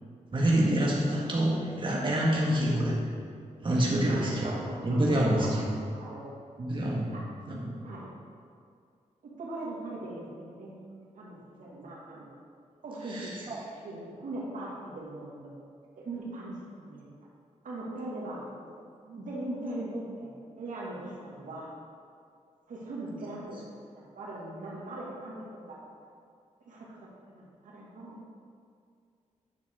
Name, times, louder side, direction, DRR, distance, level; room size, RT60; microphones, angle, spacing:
voice 1, 0.3-3.0 3.6-4.5 4.8-5.7 6.6-7.1 7.5-7.7 13.0-13.6 23.5-23.6, right 1 dB, 40° right, -4 dB, 1.7 m, -27 dB
voice 2, 4.0-6.3 7.1-7.3 7.8-8.1 9.2-12.3 12.8-13.5 13.8-15.6 16.0-17.1 17.6-18.7 19.0-20.3 20.6-21.7 22.7-25.8 26.7-28.2, right 1 dB, 80° right, -5 dB, 2.0 m, -40 dB
9.4 x 6.7 x 3.7 m, 2.3 s
cardioid pair, 70°, 13 cm